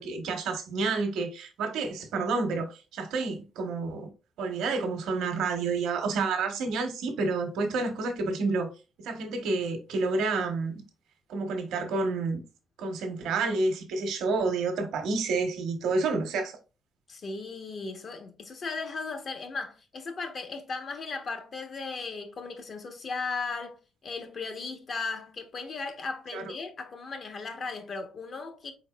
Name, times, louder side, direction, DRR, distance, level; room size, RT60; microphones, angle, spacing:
voice 1, 0.0-4.1 4.4-8.7 9.0-10.8 11.3-12.4 12.8-16.6 26.3-26.5, right 3 dB, 85° right, 1.1 m, -29 dB
voice 2, 17.1-28.7, left 4 dB, 50° left, 1.0 m, -36 dB
4.3 x 3.9 x 2.3 m
cardioid pair, 90°, 0 cm